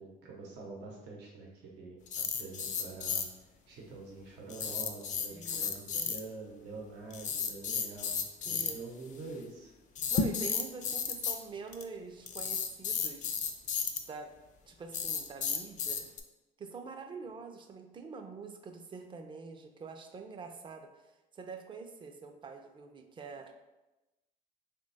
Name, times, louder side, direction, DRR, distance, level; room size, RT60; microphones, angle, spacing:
voice 1, 0.0-3.3 3.7-9.7, right 3 dB, 85° right, -1 dB, 0.7 m, -46 dB
sound 1, 2.1-3.2 4.5-6.2 7.1-8.7 9.9-11.4 11.7-11.8 12.3-14.0 14.9-16.2, left 6 dB, 45° left, 0.4 m, -33 dB
voice 2, 5.3-6.1 8.4-8.8 10.1-13.5 14.1-14.3 14.7-16.0 16.6-23.6, right 4 dB, 30° right, 5 dB, 0.4 m, -46 dB
3.0 x 2.2 x 3.9 m, 1.0 s
cardioid pair, 110°, 17 cm